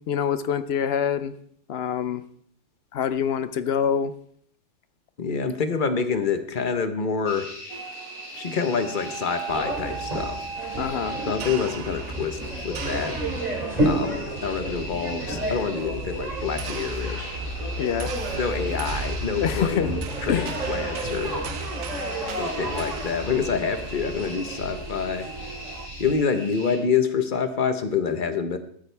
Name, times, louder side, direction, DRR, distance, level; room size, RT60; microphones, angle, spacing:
voice 1, 0.1-1.3 1.7-2.2 2.9-4.1 10.8-11.2 17.8-18.2 19.4-19.9 20.3-20.5, left 8 dB, 60° left, 14 dB, 0.7 m, -25 dB
voice 2, 5.2-7.5 8.3-10.4 11.3-13.2 13.8-17.4 18.3-21.4 22.4-25.3 26.0-28.6, left 6 dB, 40° left, 9 dB, 1.1 m, -27 dB
sound 1, 7.3-26.8, equal, 90° left, 3.2 m, -41 dB
sound 2, 7.7-25.9, right 7 dB, 70° right, 1.2 m, -39 dB
sound 3, 9.5-26.1, right 1 dB, 30° right, 2.6 m, -31 dB
15.5 x 13.0 x 3.4 m, 0.63 s
omnidirectional pair, 1.5 m